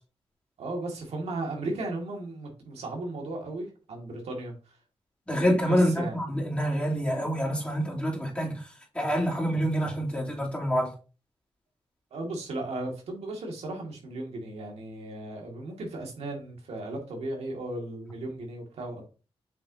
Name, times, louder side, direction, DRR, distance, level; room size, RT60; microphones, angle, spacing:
voice 1, 0.6-4.8 5.6-6.2 12.1-19.1, right 2 dB, 90° right, 2.0 m, -36 dB
voice 2, 5.3-8.7 8.9-10.9, equal, 10° left, 2.8 m, -27 dB
7.2 x 5.8 x 2.7 m
cardioid pair, 85°, 10 cm